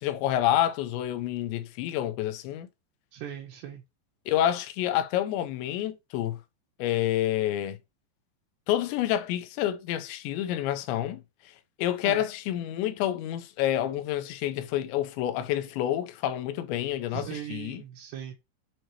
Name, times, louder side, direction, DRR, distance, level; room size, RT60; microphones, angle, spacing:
voice 1, 0.0-2.7 4.3-6.4 6.8-7.8 8.7-11.2 11.8-17.8, left 12 dB, 85° left, 3.0 m, -28 dB
voice 2, 3.1-3.8 12.0-12.2 17.1-18.3, right 10 dB, 75° right, 3.1 m, -38 dB
7.6 x 4.6 x 3.1 m
omnidirectional pair, 5.1 m